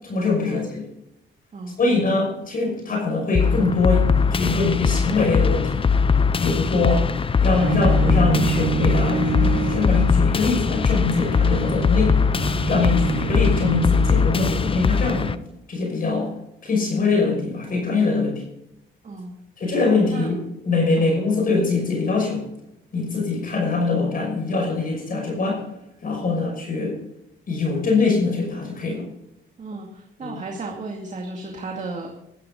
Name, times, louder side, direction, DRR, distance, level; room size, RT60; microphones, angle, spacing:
voice 1, 0.0-0.8 1.8-5.9 6.4-7.0 7.4-12.1 12.6-15.3 15.7-16.3 16.6-18.3 19.6-20.4 20.6-22.4 22.9-25.6 26.0-26.9 27.5-29.0 30.2-30.4, left 3 dB, 45° left, 0 dB, 5.9 m, -23 dB
sound 1, 3.3-15.3, left 5 dB, 25° left, 0.6 m, -21 dB
Bowed string instrument, 7.6-14.7, right 6 dB, 80° right, 1.3 m, -28 dB
voice 2, 19.0-19.4 20.1-20.4 21.0-21.2 26.3-26.5 29.6-32.2, right 3 dB, 35° right, 1 dB, 2.3 m, -35 dB
14.5 x 13.5 x 3.9 m, 0.83 s
cardioid pair, 90°, 20 cm